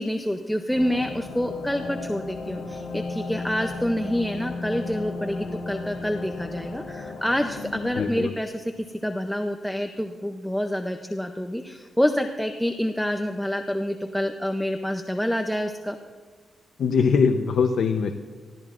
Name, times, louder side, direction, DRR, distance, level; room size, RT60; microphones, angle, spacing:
voice 1, 0.0-16.0, equal, ahead, 5 dB, 0.5 m, -27 dB
sound 1, 0.7-8.1, left 3 dB, 80° left, 1.6 m, -35 dB
voice 2, 8.0-8.3 16.8-18.1, left 5 dB, 65° left, 5 dB, 0.7 m, -22 dB
24.0 x 15.5 x 2.5 m, 1.5 s
wide cardioid pair, 170°, 0 cm